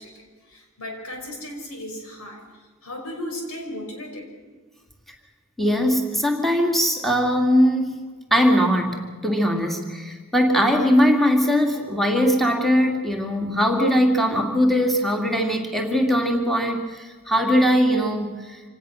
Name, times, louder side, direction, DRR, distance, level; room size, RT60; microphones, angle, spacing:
voice 1, 0.0-4.3, left 1 dB, 85° left, 3 dB, 5.4 m, -36 dB
voice 2, 5.6-8.0 8.3-18.6, equal, ahead, 2 dB, 2.2 m, -20 dB
26.5 x 18.0 x 6.4 m, 1.4 s
head